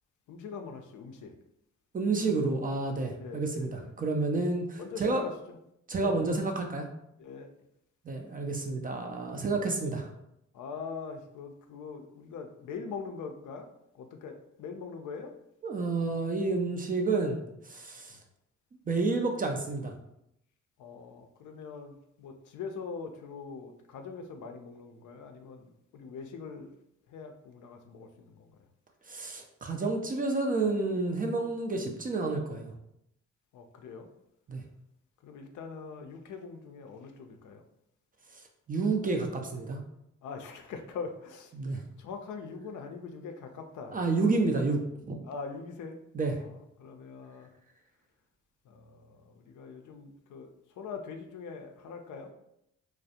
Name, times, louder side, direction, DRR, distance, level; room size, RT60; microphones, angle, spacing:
voice 1, 0.3-1.3 3.2-3.9 4.8-5.6 6.0-6.1 7.2-7.5 10.5-13.7 13.9-15.3 18.1-18.2 20.8-26.7 27.1-28.5 33.5-34.1 35.2-37.6 40.2-44.0 45.2-47.5 48.6-52.3, left 5 dB, 55° left, 5 dB, 0.5 m, -43 dB
voice 2, 1.9-5.2 5.9-6.9 8.0-10.1 15.6-18.2 18.9-19.9 29.1-32.7 34.5-34.6 38.3-38.4 38.7-39.8 41.5-41.8 43.9-45.2 46.1-46.3, right 3 dB, 25° right, 2 dB, 0.4 m, -30 dB
2.3 x 2.0 x 2.7 m, 0.79 s
hypercardioid pair, 50°, 35 cm